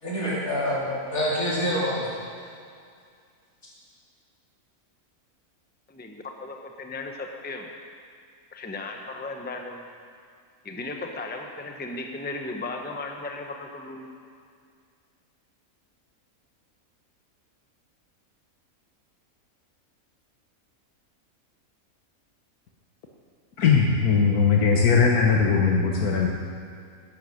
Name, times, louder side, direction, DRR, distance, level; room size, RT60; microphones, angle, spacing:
voice 1, 0.0-2.2, equal, 70° left, -7 dB, 4.4 m, -26 dB
voice 2, 5.9-7.7 8.5-9.9 10.6-14.1, left 2 dB, 10° left, 3 dB, 0.8 m, -36 dB
voice 3, 23.6-26.3, left 5 dB, 85° left, 0 dB, 1.6 m, -20 dB
12.5 x 11.0 x 6.5 m, 2.2 s
omnidirectional pair, 1.5 m